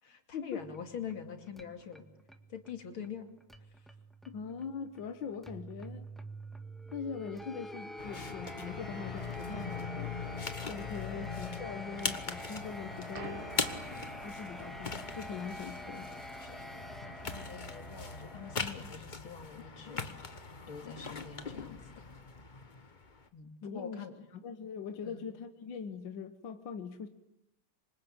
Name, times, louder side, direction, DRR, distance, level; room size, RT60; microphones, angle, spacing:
voice 1, 0.0-2.1 2.5-3.3 3.8-3.9 4.3-4.4 11.2-11.3 13.6-14.0 16.4-20.1 20.7-22.1 23.3-24.1 25.0-25.3, left 7 dB, 90° left, 6 dB, 3.4 m, -45 dB
sound 1, 0.6-18.6, equal, ahead, 1.4 m, -47 dB
voice 2, 4.3-6.1 6.9-13.5 14.2-16.1 23.6-24.0 24.3-27.1, left 6 dB, 70° left, 8 dB, 1.9 m, -42 dB
sound 2, 8.0-23.3, left 4 dB, 25° left, 1.2 m, -41 dB
sound 3, 12.4-17.3, right 5 dB, 30° right, 1.4 m, -51 dB
27.0 x 24.5 x 8.7 m, 0.87 s
omnidirectional pair, 2.2 m